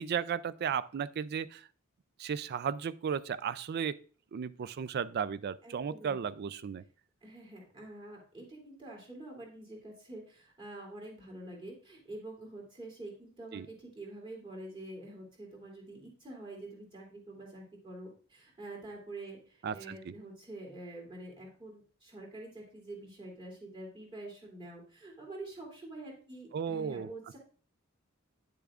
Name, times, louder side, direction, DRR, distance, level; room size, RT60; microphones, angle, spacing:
voice 1, 0.0-1.7 2.2-4.0 4.3-6.8 13.5-13.7 19.6-20.1 26.5-27.1, right 7 dB, 50° right, 17 dB, 0.3 m, -35 dB
voice 2, 5.6-6.2 7.2-27.4, right 2 dB, 25° right, -2 dB, 2.8 m, -47 dB
10.0 x 6.8 x 2.4 m, 0.42 s
head